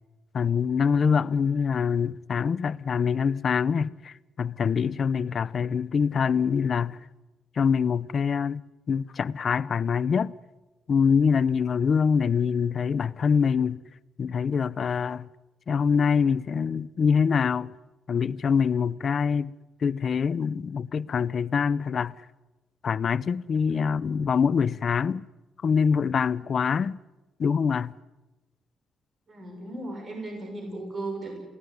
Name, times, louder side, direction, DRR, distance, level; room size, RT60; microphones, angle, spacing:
voice 1, 0.3-7.0 7.6-8.6 8.9-10.3 10.9-13.8 14.2-15.3 15.7-17.7 18.1-19.5 19.8-22.1 22.8-25.3 25.6-27.0 27.4-27.9, left 6 dB, 50° left, 0.7 m, -24 dB
voice 2, 29.3-31.4, right 2 dB, 40° right, 6.4 m, -36 dB
28.5 x 17.5 x 9.6 m
cardioid pair, 100°, 0 cm